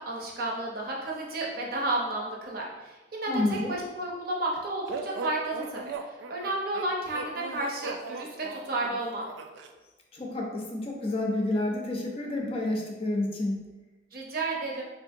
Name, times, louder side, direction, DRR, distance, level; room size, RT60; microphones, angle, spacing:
voice 1, 0.0-5.9 6.3-9.3 14.1-14.8, right 2 dB, 55° right, -2 dB, 0.6 m, -32 dB
voice 2, 3.3-3.8 10.1-13.7, left 2 dB, 30° left, 0 dB, 0.5 m, -29 dB
sound 1, 4.9-9.7, right 3 dB, 85° right, 0.3 m, -38 dB
3.6 x 2.5 x 2.6 m, 1.2 s
head